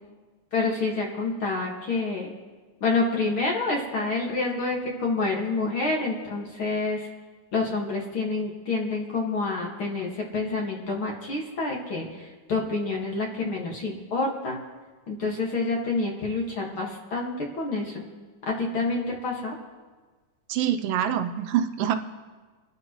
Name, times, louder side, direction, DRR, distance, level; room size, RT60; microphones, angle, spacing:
voice 1, 0.5-2.3 2.8-7.1 7.5-14.6 15.1-18.0 18.5-19.6, left 3 dB, 45° left, -1 dB, 2.1 m, -28 dB
voice 2, 20.5-22.0, right 10 dB, 85° right, 9 dB, 2.4 m, -25 dB
25.5 x 12.5 x 3.0 m, 1.3 s
omnidirectional pair, 3.8 m